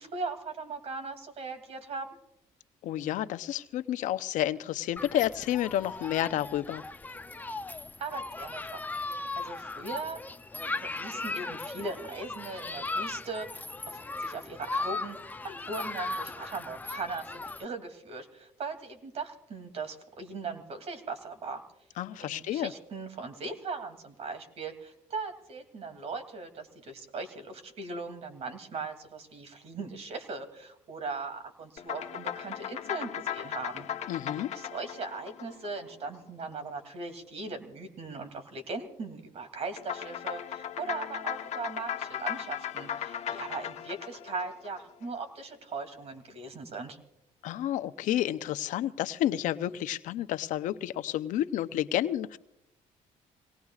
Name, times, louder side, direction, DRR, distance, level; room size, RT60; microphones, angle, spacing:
voice 1, 0.0-2.1 8.0-8.9 9.4-10.2 10.8-21.6 22.2-33.9 34.5-47.0, right 3 dB, 55° right, 7 dB, 2.7 m, -39 dB
voice 2, 2.8-6.8 22.0-22.7 34.1-34.5 47.4-52.4, left 12 dB, 75° left, 13 dB, 0.6 m, -30 dB
Human group actions, 5.0-17.6, left 3 dB, 15° left, 0.5 m, -37 dB
sound 1, 31.8-36.4 39.8-45.2, left 10 dB, 60° left, 1.1 m, -37 dB
25.5 x 19.0 x 2.4 m, 0.79 s
cardioid pair, 105°, 13 cm